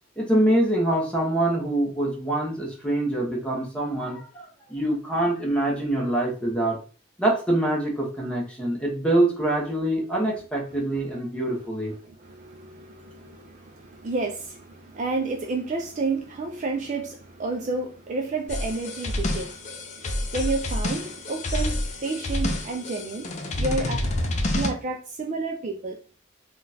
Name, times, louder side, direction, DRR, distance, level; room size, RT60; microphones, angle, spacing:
voice 1, 0.2-6.8 7.2-11.9, right 1 dB, 5° left, -3 dB, 0.9 m, -25 dB
voice 2, 11.9-24.0 24.5-26.0, right 3 dB, 35° right, 2 dB, 0.4 m, -31 dB
sound 1, 18.5-24.7, left 1 dB, 35° left, 0.4 m, -28 dB
3.7 x 2.3 x 2.6 m, 0.38 s
head